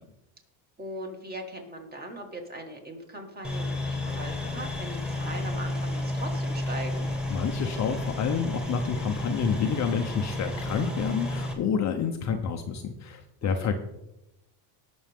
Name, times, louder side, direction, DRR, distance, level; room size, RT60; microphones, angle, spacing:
voice 1, 0.8-7.1 13.4-13.7, right 1 dB, 20° right, 2 dB, 2.2 m, -40 dB
sound 1, 3.4-11.5, left 1 dB, ahead, 2.1 m, -31 dB
voice 2, 7.3-13.8, left 6 dB, 35° left, 5 dB, 0.8 m, -28 dB
19.0 x 6.3 x 3.6 m, 0.89 s
cardioid pair, 130°, 48 cm